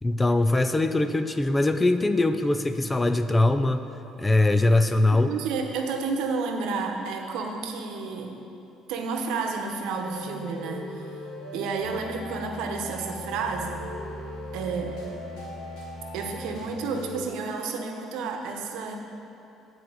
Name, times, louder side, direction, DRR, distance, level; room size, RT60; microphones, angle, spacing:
voice 1, 0.0-3.8 4.2-5.3, left 2 dB, 10° left, 8 dB, 0.4 m, -22 dB
voice 2, 5.1-8.4 8.9-13.8 14.5-14.9 16.1-19.0, right 4 dB, 80° right, 3 dB, 1.0 m, -31 dB
sound 1, 9.9-17.3, left 1 dB, 85° left, 2.4 m, -38 dB
10.0 x 4.6 x 7.7 m, 2.7 s
cardioid pair, 175°, 0 cm